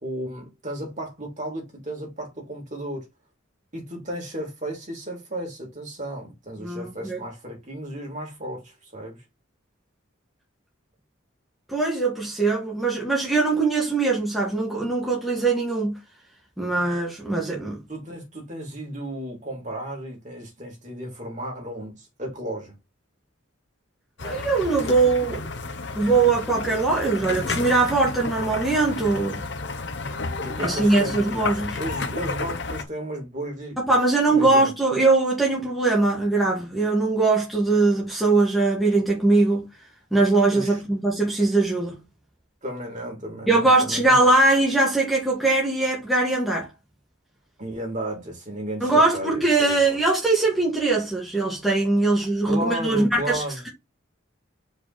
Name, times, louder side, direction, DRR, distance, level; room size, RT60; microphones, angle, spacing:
voice 1, 0.0-3.1 3.7-9.2 17.9-22.8 30.4-33.8 34.3-34.7 40.5-40.8 42.6-44.2 47.6-49.8 52.4-53.6, right 1 dB, 35° right, 3.1 m, -34 dB
voice 2, 6.6-7.2 11.7-15.9 16.6-17.8 24.2-25.5 25.9-29.4 30.6-31.8 33.8-39.6 40.1-42.0 43.5-46.7 48.8-53.7, right 3 dB, ahead, 2.0 m, -21 dB
sound 1, 24.2-32.8, left 3 dB, 55° left, 1.0 m, -31 dB
5.3 x 4.2 x 4.4 m
head